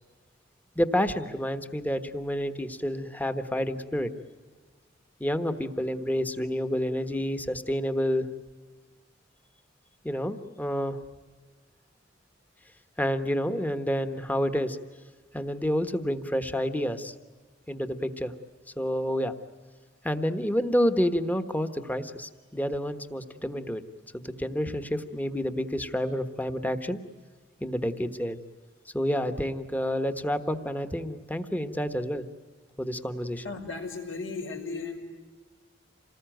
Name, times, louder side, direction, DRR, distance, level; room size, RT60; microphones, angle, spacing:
voice 1, 0.7-4.1 5.2-8.3 10.0-11.0 13.0-14.8 15.3-17.1 17.7-18.3 18.8-19.3 20.0-23.8 24.1-27.0 27.6-28.4 28.9-32.2 32.8-33.4, equal, 10° left, 9 dB, 1.2 m, -29 dB
voice 2, 33.4-35.0, left 4 dB, 85° left, 2 dB, 5.2 m, -35 dB
27.5 x 19.5 x 9.2 m, 1.4 s
head